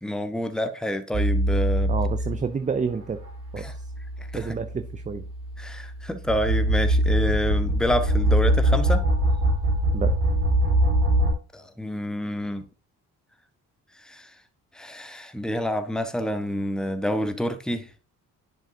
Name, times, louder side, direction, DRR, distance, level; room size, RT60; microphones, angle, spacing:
voice 1, 0.0-1.9 3.6-3.7 4.3-4.5 5.6-9.0 11.5-12.6 14.0-14.3 14.7-17.9, equal, ahead, 1.1 m, -28 dB
sound 1, 1.1-2.5 3.1-11.3, right 1 dB, 75° right, 2.5 m, -23 dB
voice 2, 1.9-3.2 3.5-3.8 4.3-5.3 9.9-10.2, right 5 dB, 15° right, 0.5 m, -29 dB
10.0 x 5.2 x 2.7 m
hypercardioid pair, 50°, 45 cm